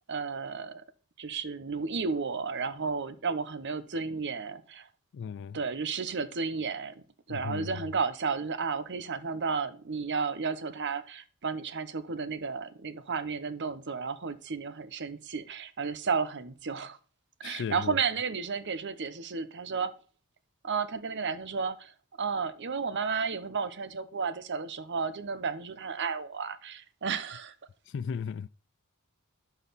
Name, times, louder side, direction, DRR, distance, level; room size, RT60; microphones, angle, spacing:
voice 1, 0.1-0.8 1.2-4.9 5.5-17.0 17.4-19.9 20.6-27.5, right 5 dB, 55° right, 0.8 m, -33 dB
voice 2, 5.1-5.6 7.3-7.9 17.4-18.0 27.9-28.5, left 6 dB, 55° left, 0.3 m, -36 dB
12.5 x 4.1 x 4.0 m
head